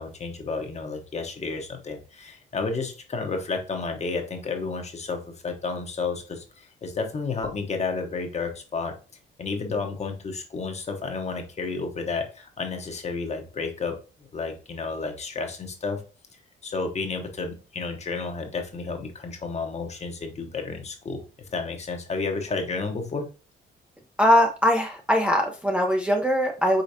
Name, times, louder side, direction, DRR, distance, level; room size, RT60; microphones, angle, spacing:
voice 1, 0.0-8.9 9.4-16.0 16.6-23.3, left 4 dB, 35° left, 4 dB, 1.0 m, -31 dB
voice 2, 24.2-26.8, equal, 5° right, 1 dB, 0.6 m, -21 dB
5.1 x 3.8 x 2.6 m, 0.34 s
cardioid pair, 110°, 19 cm